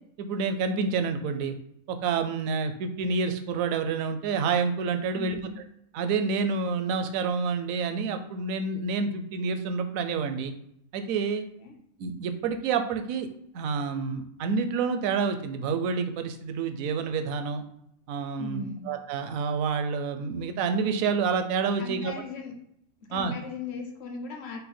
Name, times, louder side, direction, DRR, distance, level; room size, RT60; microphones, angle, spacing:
voice 1, 0.2-1.6 1.9-5.4 5.9-10.5 10.9-11.5 12.0-13.3 13.5-17.6 18.1-22.1 23.1-23.3, right 5 dB, 75° right, 8 dB, 0.9 m, -28 dB
voice 2, 5.1-5.6 11.6-11.7 18.4-18.9 21.8-22.5 23.1-24.6, left 3 dB, 55° left, 3 dB, 0.9 m, -37 dB
5.4 x 2.1 x 4.2 m, 0.73 s
omnidirectional pair, 1.5 m